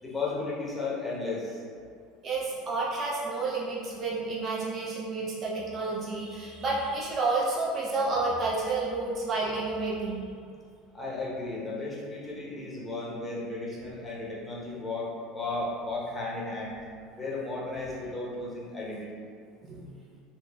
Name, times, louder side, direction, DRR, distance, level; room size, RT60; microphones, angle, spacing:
voice 1, 0.0-1.6 10.9-16.8 17.2-19.1, left 3 dB, 15° left, -6 dB, 0.9 m, -34 dB
voice 2, 2.2-10.2 19.6-19.9, right 3 dB, 40° right, -5 dB, 0.6 m, -30 dB
3.9 x 2.3 x 2.3 m, 2.2 s
hypercardioid pair, 75°, 0 cm